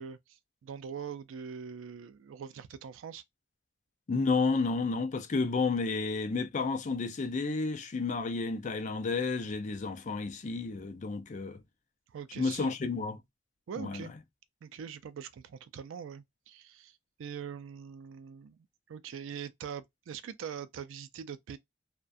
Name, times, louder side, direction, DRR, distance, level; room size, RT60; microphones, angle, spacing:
voice 1, 0.0-3.2 12.1-12.9 13.7-14.1 14.6-18.6 18.9-21.6, right 7 dB, 85° right, 0.4 m, -43 dB
voice 2, 4.1-11.6 12.4-13.2 13.8-14.1, left 4 dB, 40° left, 0.4 m, -31 dB
2.3 x 2.1 x 2.5 m
head